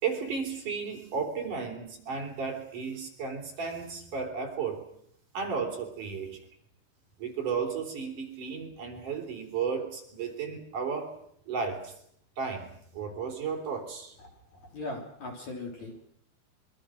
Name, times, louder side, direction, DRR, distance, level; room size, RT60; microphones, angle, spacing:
voice 1, 0.0-4.9 5.3-6.4 7.2-11.2 11.5-12.0 12.4-14.1, right 5 dB, 45° right, 1 dB, 4.7 m, -34 dB
voice 2, 14.2-16.1, left 2 dB, 40° left, 1 dB, 4.3 m, -40 dB
25.5 x 23.5 x 6.4 m, 0.69 s
omnidirectional pair, 5.5 m